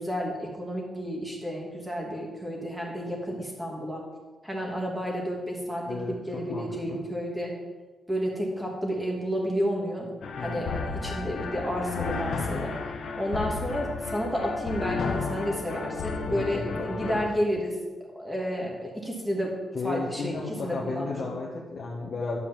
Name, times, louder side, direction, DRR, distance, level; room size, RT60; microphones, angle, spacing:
voice 1, 0.0-4.0 4.4-7.5 8.1-10.1 10.4-12.7 13.1-17.8 18.1-19.5 19.8-21.4, equal, 5° right, -2 dB, 2.3 m, -31 dB
voice 2, 5.8-7.0 10.4-10.7 16.3-17.2 19.7-22.4, left 3 dB, 40° left, -3 dB, 1.5 m, -34 dB
sound 1, 10.2-17.3, left 4 dB, 65° left, 1.3 m, -33 dB
11.5 x 5.1 x 7.3 m, 1.3 s
wide cardioid pair, 140°, 0 cm